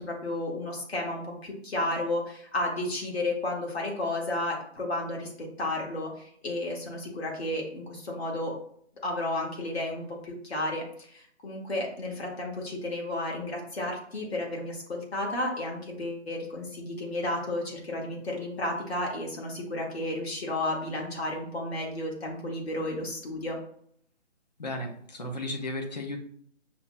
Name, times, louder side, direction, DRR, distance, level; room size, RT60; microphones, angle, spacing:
voice 1, 0.0-8.5 9.0-23.6, left 1 dB, 55° left, -1 dB, 1.4 m, -32 dB
voice 2, 24.6-26.2, left 1 dB, 35° left, 3 dB, 0.5 m, -34 dB
5.5 x 2.1 x 2.6 m, 0.63 s
figure-of-eight pair, 155°, 36 cm